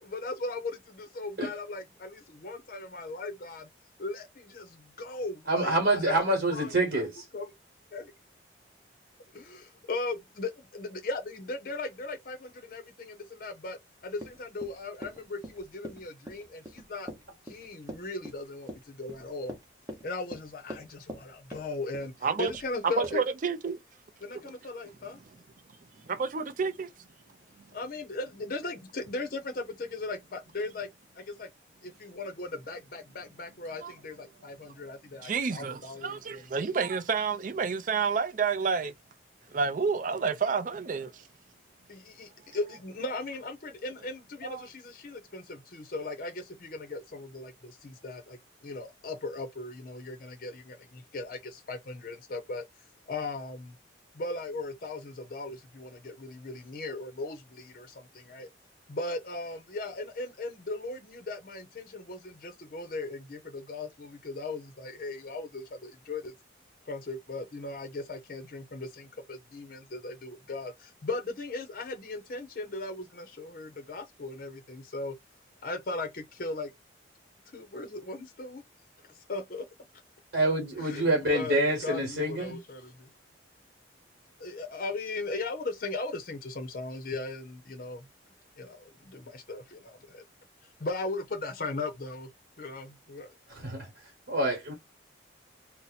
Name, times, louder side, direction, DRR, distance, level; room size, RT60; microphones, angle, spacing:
voice 1, 0.0-3.7 4.0-7.1 7.3-7.5 7.9-8.1 9.3-17.1 17.4-19.6 20.0-23.2 24.2-25.2 27.7-30.9 31.1-31.5 31.8-36.5 41.9-52.6 53.1-53.8 54.1-58.5 58.9-66.3 66.8-75.2 75.6-76.7 77.5-78.6 79.1-79.7 80.8-83.1 84.4-88.1 88.6-90.2 90.8-92.3 92.6-93.4, left 2 dB, 50° left, 0.6 m, -38 dB
voice 2, 5.5-7.2 80.3-82.6 93.5-93.9 94.3-94.7, right 1 dB, 60° right, 1.2 m, -27 dB
Run, 14.1-21.2 21.5-22.1 22.5-22.7 23.0-23.2, equal, 15° right, 0.8 m, -43 dB
voice 3, 23.0-23.8 26.1-26.9 33.8-33.9 35.2-38.9 39.5-41.2 44.4-44.6, right 5 dB, 45° right, 0.4 m, -29 dB
2.7 x 2.0 x 4.0 m
head